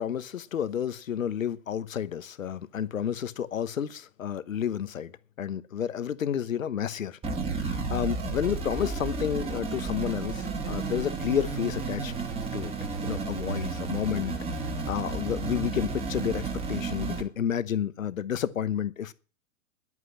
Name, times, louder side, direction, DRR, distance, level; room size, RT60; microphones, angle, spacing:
voice 1, 0.0-5.1 5.4-12.1 12.5-12.7 13.0-14.4 14.9-19.1, left 9 dB, 70° left, 1.0 m, -31 dB
sound 1, 7.2-17.2, right 4 dB, 15° right, 2.2 m, -32 dB
11.0 x 8.4 x 8.4 m
figure-of-eight pair, 115°, 41 cm